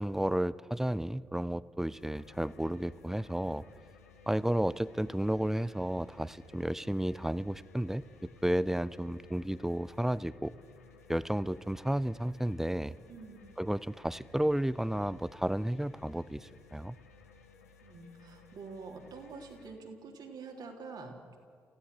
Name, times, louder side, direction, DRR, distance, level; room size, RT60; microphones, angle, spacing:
voice 1, 0.0-3.6 4.3-8.0 8.4-10.5 11.1-12.9 13.6-17.0, right 1 dB, 5° right, 18 dB, 0.7 m, -32 dB
sound 1, 1.9-19.8, left 5 dB, 90° left, 1.2 m, -58 dB
voice 2, 13.1-13.4 17.8-21.4, right 4 dB, 60° right, 2 dB, 3.5 m, -46 dB
30.0 x 16.0 x 6.8 m, 2.3 s
hypercardioid pair, 40°, 8 cm